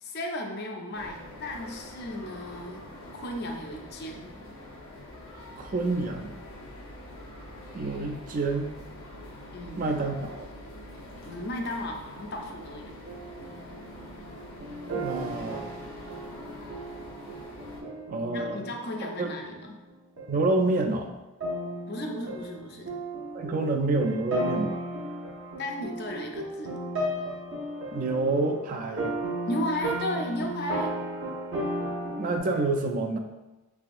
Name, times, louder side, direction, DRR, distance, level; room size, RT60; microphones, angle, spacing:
voice 1, 0.0-2.9 3.1-4.3 9.5-9.8 11.2-12.9 18.3-19.8 21.9-22.9 25.6-26.8 29.5-30.9, left 1 dB, 50° left, 2 dB, 0.5 m, -34 dB
sound 1, 0.9-17.8, left 1 dB, 85° left, 0.8 m, -45 dB
voice 2, 5.6-6.4 7.7-8.7 9.8-10.5 14.9-15.8 18.1-18.6 19.2-19.3 20.3-21.1 23.3-24.8 27.9-29.2 32.2-33.2, right 2 dB, 40° right, 3 dB, 0.3 m, -28 dB
sound 2, 5.6-11.8, right 2 dB, 85° right, 1.1 m, -52 dB
sound 3, 13.0-19.9 20.2-20.5 21.4-32.4, right 1 dB, 60° right, 0.7 m, -35 dB
3.5 x 3.3 x 2.5 m, 1.1 s
head